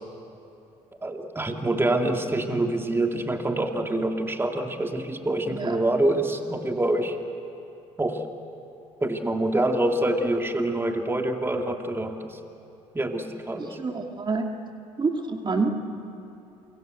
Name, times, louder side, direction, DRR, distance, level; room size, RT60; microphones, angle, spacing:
voice 1, 1.0-7.2 8.0-8.2 9.0-12.4 12.9-13.8, right 1 dB, 15° right, 3 dB, 2.5 m, -26 dB
voice 2, 13.8-14.5 15.0-15.7, right 4 dB, 35° right, 3 dB, 2.4 m, -27 dB
28.5 x 23.5 x 8.1 m, 2.8 s
supercardioid pair, 65°, 14 cm